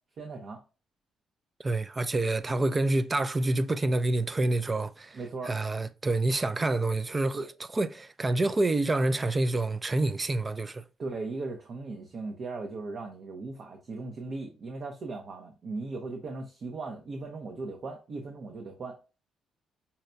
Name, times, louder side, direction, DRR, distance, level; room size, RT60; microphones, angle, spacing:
voice 1, 0.2-0.6 5.1-5.5 7.3-7.5 11.0-19.0, right 3 dB, 55° right, 0.7 m, -38 dB
voice 2, 1.6-5.2 5.5-7.4 7.7-10.8, right 2 dB, 25° right, 0.3 m, -27 dB
5.6 x 2.2 x 2.5 m
cardioid pair, 90°, 0 cm